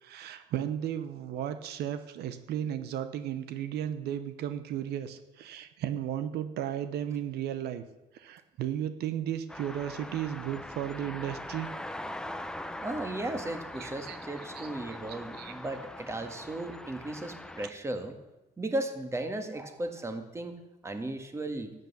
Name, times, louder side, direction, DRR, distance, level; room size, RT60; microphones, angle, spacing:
voice 1, 0.0-7.8 8.1-11.7 13.8-14.2 14.5-14.7 15.1-15.6 17.6-17.7, right 10 dB, 75° right, 10 dB, 0.9 m, -35 dB
sound 1, 9.5-17.7, left 1 dB, 5° left, 0.6 m, -42 dB
voice 2, 12.8-18.2 18.6-21.7, right 1 dB, 15° right, 6 dB, 1.6 m, -36 dB
12.0 x 8.2 x 7.0 m, 1.0 s
cardioid pair, 110°, 17 cm